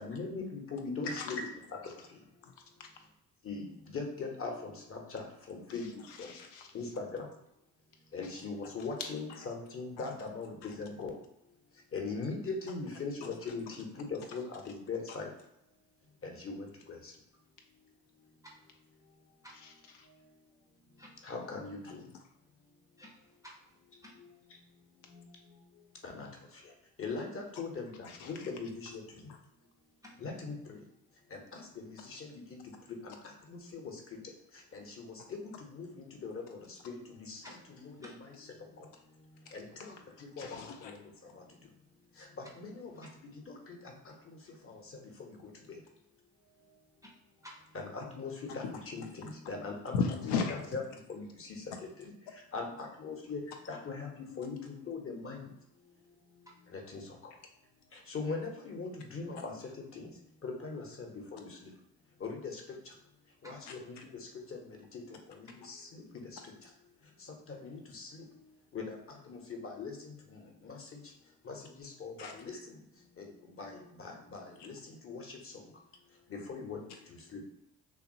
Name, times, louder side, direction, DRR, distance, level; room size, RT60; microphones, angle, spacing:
voice 1, 0.0-1.5 3.5-5.9 6.2-6.3 6.7-7.3 8.1-11.1 11.9-13.6 14.0-15.3 16.2-16.7 21.3-21.8 26.0-26.3 27.0-27.3 27.6-27.9 28.3-29.0 30.2-30.5 31.3-31.4 31.8-31.9 32.1-32.6 33.5-33.8 34.7-34.8 35.3-35.4 35.8-36.3 36.8-37.0 37.3-37.4 37.7-38.1 39.5-39.6 40.4-40.6 42.6-42.9 43.5-43.6 44.7-44.8 47.7-49.9 50.7-50.8 51.1-51.2 51.7-51.8 52.5-53.4 53.7-55.4 56.9-57.0 58.1-59.5 60.0-60.1 60.4-61.5 62.2-62.6 63.4-63.8 65.7-65.8 67.5-68.1 68.7-69.0 69.3-69.9 70.7-70.8 71.5-72.6 73.6-74.7 75.0-75.2 76.3-76.8 77.3-77.4, left 4 dB, 30° left, 2 dB, 0.8 m, -40 dB
voice 2, 1.0-1.4 2.4-2.5 2.8-3.1 5.7-6.7 9.4-9.5 10.0-10.1 10.6-10.7 19.5-20.1 28.0-28.5 37.5-37.6 39.5-39.6 40.4-40.9 49.9-50.6 59.4-59.5 64.0-64.1 72.2-72.3, left 5 dB, 65° left, 4 dB, 0.5 m, -37 dB
voice 3, 18.4-18.8 19.4-19.6 21.0-21.2 23.0-24.1 30.0-30.2 37.4-38.1 43.0-43.1 47.0-47.1 47.4-47.7 56.5-56.6 63.4-63.6, equal, 10° right, -2 dB, 0.5 m, -54 dB
2.9 x 2.3 x 2.6 m, 0.82 s
hypercardioid pair, 45°, 46 cm